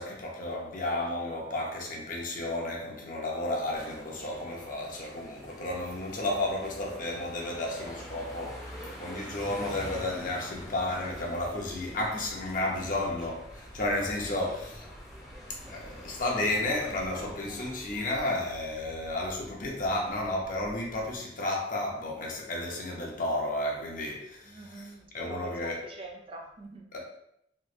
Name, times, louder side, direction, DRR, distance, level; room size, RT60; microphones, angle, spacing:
voice 1, 0.0-14.8 15.7-25.8 26.9-27.0, left 1 dB, 45° left, -1 dB, 0.7 m, -32 dB
sound 1, 3.8-18.4, equal, ahead, 0.9 m, -46 dB
sound 2, 10.4-21.2, equal, 85° right, 0.8 m, -51 dB
voice 2, 24.5-26.9, right 2 dB, 30° right, 1 dB, 0.4 m, -44 dB
3.1 x 3.0 x 2.4 m, 0.76 s
head